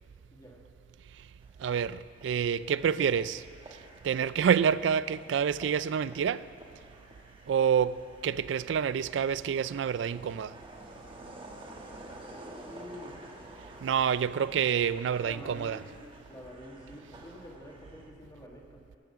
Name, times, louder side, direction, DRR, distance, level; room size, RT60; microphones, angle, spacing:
sound 1, 1.4-18.1, right 1 dB, 30° right, 1.1 m, -50 dB
voice 1, 1.6-3.4 4.0-6.4 7.5-8.0 8.2-10.5 13.8-15.8, right 7 dB, 70° right, 0.3 m, -27 dB
voice 2, 12.6-13.2 15.2-15.8 16.3-18.6, equal, 20° left, 1.6 m, -47 dB
13.5 x 6.1 x 6.9 m
head